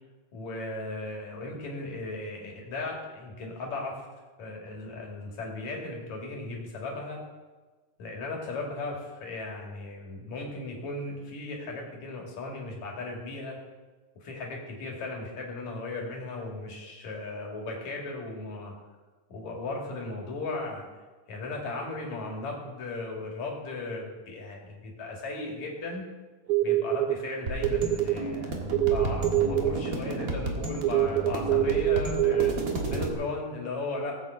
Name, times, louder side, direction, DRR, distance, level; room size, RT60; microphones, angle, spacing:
voice 1, 0.3-4.0 4.4-7.2 8.0-13.6 14.2-18.7 19.3-20.9 21.3-26.0 26.6-28.6 28.9-32.6 32.9-34.2, left 2 dB, 60° left, -1 dB, 3.7 m, -36 dB
sound 1, 26.5-27.2 27.6-28.2 28.7-29.7 30.8-32.5, right 14 dB, 80° right, 1.9 m, -24 dB
sound 2, 27.5-33.1, right 2 dB, 40° right, 1.4 m, -32 dB
19.5 x 8.0 x 4.9 m, 1.3 s
omnidirectional pair, 3.8 m